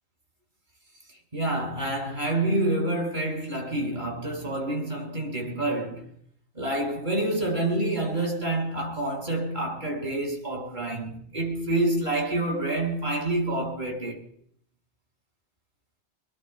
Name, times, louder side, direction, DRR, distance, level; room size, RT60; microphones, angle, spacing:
voice 1, 1.3-6.1 6.5-14.2, right 1 dB, 45° right, 6.0 m, -28 dB
26.5 x 20.0 x 2.3 m
omnidirectional pair, 1.1 m